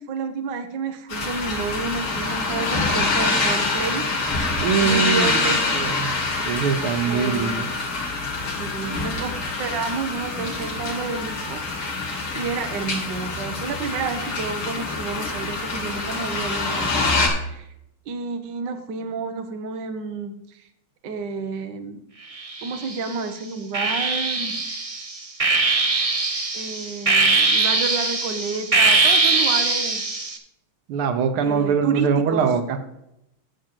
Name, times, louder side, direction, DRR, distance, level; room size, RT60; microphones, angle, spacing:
voice 1, 0.0-4.0 4.8-5.6 7.0-7.7 8.5-12.1 12.3-17.0 17.3-17.7 18.1-20.6 21.0-22.0 22.6-24.5 26.5-30.0 31.4-32.5, right 5 dB, 60° right, 7 dB, 1.6 m, -30 dB
sound 1, 1.1-17.3, left 3 dB, 70° left, 3.0 m, -25 dB
voice 2, 4.6-5.4 5.7-6.1 6.5-7.7 30.9-32.6, right 6 dB, 85° right, 9 dB, 1.9 m, -22 dB
sound 2, 22.4-23.1 23.7-30.4, right 3 dB, 35° right, 0.5 m, -21 dB
10.0 x 7.6 x 4.5 m, 0.81 s
omnidirectional pair, 2.3 m